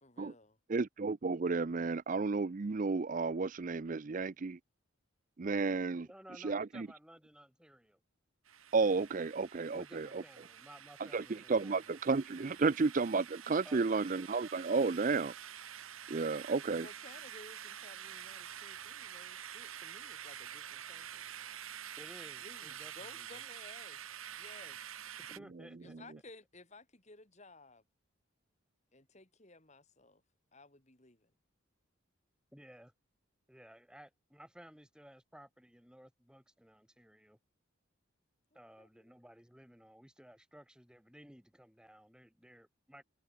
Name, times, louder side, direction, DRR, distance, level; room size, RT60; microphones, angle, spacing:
voice 1, 0.0-0.6 16.8-21.2 22.4-25.0 25.8-27.8 28.9-30.2 30.5-31.3 38.5-39.1, left 2 dB, 35° left, 2.8 m, -57 dB
voice 2, 0.7-4.6 5.4-6.1 6.4-6.9 8.7-10.2 11.1-15.3 16.1-16.9, right 4 dB, 40° right, 0.4 m, -32 dB
voice 3, 6.0-8.0 9.7-11.8 13.6-14.1 22.0-23.4 25.2-26.0 32.5-32.9 33.5-37.4 38.5-43.0, equal, 5° right, 1.9 m, -57 dB
sound 1, 8.4-25.4, right 9 dB, 80° right, 1.9 m, -48 dB
head